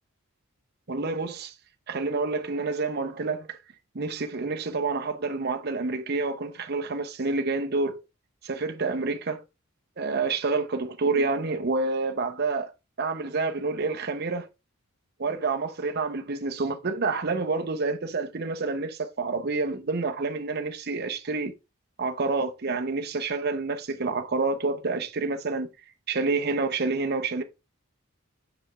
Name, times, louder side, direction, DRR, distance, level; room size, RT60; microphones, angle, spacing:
voice 1, 0.9-1.5 1.9-3.6 3.9-8.0 8.4-9.4 10.0-12.7 13.0-14.5 15.2-21.5 22.0-25.7 26.1-27.4, right 3 dB, 50° right, 0.7 m, -28 dB
6.1 x 4.9 x 3.3 m
head